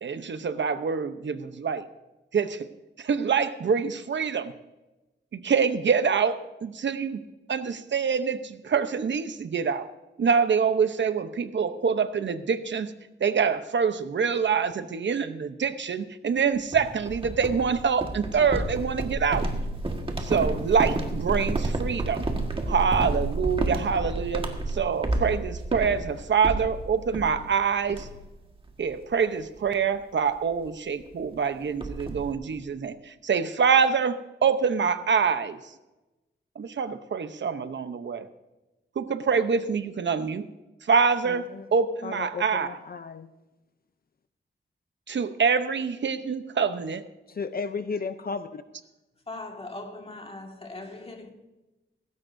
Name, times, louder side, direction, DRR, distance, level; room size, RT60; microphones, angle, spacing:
voice 1, 0.0-1.8 2.3-2.7 3.0-4.5 5.3-7.2 7.5-9.9 10.2-12.9 13.2-19.5 20.2-22.2 22.7-28.1 28.8-35.6 36.6-38.3 39.0-40.5 40.9-42.7 45.1-47.0, right 6 dB, 70° right, 0.8 m, -25 dB
sound 1, 16.7-27.6 27.9-28.4 28.7-28.9 29.4-29.6 30.6-30.7 31.0-31.1 31.4-32.3, right 2 dB, 25° right, 1.6 m, -30 dB
voice 2, 41.2-41.7 42.0-43.3 47.3-48.5, left 5 dB, 50° left, 0.6 m, -34 dB
voice 3, 49.3-51.3, left 2 dB, 30° left, 1.9 m, -40 dB
18.0 x 16.5 x 2.7 m
wide cardioid pair, 140°, 20 cm